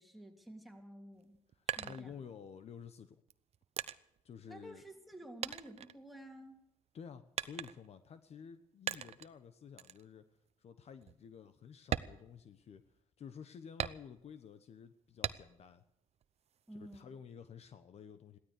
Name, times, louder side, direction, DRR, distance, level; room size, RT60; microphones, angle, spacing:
voice 1, 0.0-1.4 1.7-2.3 4.5-6.6 16.7-17.1, right 1 dB, ahead, 2 dB, 2.9 m, -52 dB
sound 1, 1.1-2.7 3.3-5.1 5.4-6.6 7.4-8.0 8.9-9.4 9.8-10.0 10.5-10.6 11.0-11.2 11.8-13.0 13.8-14.4 15.2-15.8 16.2-17.0, right 9 dB, 55° right, 0.8 m, -41 dB
voice 2, 1.6-3.2 4.2-4.8 6.9-10.3 10.6-12.8 13.2-15.8 16.7-18.4, left 7 dB, 55° left, 11 dB, 1.1 m, -52 dB
16.5 x 13.0 x 6.6 m, 0.84 s
cardioid pair, 80°, 13 cm